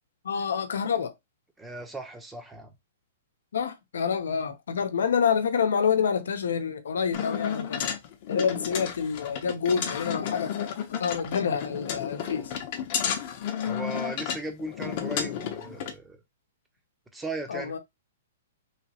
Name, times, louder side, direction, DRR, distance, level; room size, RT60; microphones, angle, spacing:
voice 1, 0.2-1.1 3.5-7.9 8.3-12.5 17.5-17.8, left 6 dB, 80° left, 0.8 m, -27 dB
voice 2, 1.6-2.7 13.6-16.2 17.1-17.7, right 2 dB, 10° right, 0.8 m, -37 dB
sound 1, 7.1-15.9, left 8 dB, 45° left, 0.8 m, -32 dB
3.2 x 3.0 x 2.9 m
hypercardioid pair, 145°, 0 cm